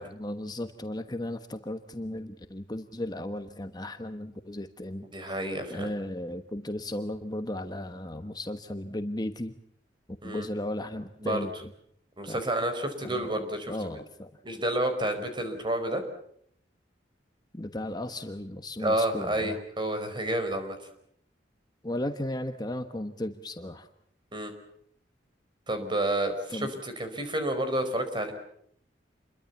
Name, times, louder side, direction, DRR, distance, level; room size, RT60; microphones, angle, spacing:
voice 1, 0.0-5.1 5.7-9.5 10.2-11.7 12.3-12.4 13.0-13.3 13.7-14.3 17.5-19.6 21.8-23.9 26.5-26.7, left 1 dB, 25° left, 8 dB, 1.2 m, -35 dB
voice 2, 5.1-5.9 10.2-10.5 11.2-11.5 12.2-14.0 14.4-16.0 18.8-20.9 24.3-24.5 25.7-28.3, right 1 dB, 25° right, 7 dB, 4.9 m, -30 dB
28.5 x 22.5 x 7.2 m, 0.69 s
head